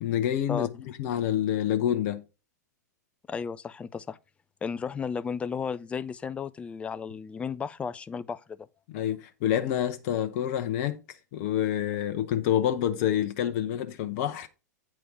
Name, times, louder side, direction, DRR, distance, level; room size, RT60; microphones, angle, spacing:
voice 1, 0.0-2.2 8.9-11.0 11.3-14.5, left 10 dB, 45° left, 0.8 m, -27 dB
voice 2, 3.3-4.2 4.6-8.6, left 6 dB, 10° left, 0.4 m, -34 dB
8.6 x 4.5 x 4.9 m
figure-of-eight pair, 100°, 10 cm